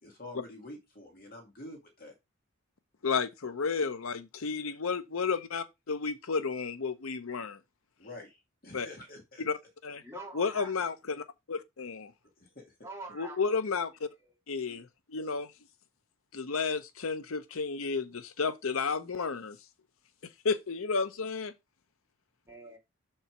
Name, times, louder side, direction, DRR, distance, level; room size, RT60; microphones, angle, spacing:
voice 1, 0.0-2.2 8.0-9.4 12.4-12.8, left 1 dB, 45° left, 2.0 m, -47 dB
voice 2, 3.0-7.6 8.7-8.9 9.4-9.6 9.8-10.0 10.3-12.1 13.1-14.1 14.5-15.5 16.3-19.6 20.4-21.5, left 5 dB, 85° left, 0.8 m, -32 dB
voice 3, 10.0-10.7 12.8-13.4 14.2-14.3 22.5-22.8, right 2 dB, 10° right, 2.6 m, -45 dB
6.8 x 4.5 x 4.5 m
head